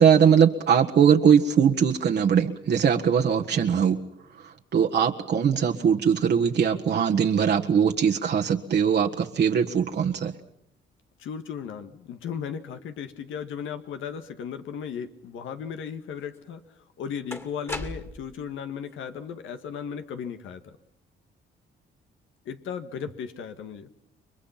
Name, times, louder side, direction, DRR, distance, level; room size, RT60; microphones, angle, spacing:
voice 1, 0.0-4.0 4.7-10.3, right 7 dB, 60° right, 1.7 m, -21 dB
voice 2, 11.2-16.6 17.0-20.7 22.5-23.9, left 7 dB, 80° left, 1.8 m, -36 dB
sound 1, 16.3-16.4 17.3-18.4, left 1 dB, 10° left, 2.4 m, -36 dB
30.0 x 23.0 x 5.9 m
cardioid pair, 90°, 20 cm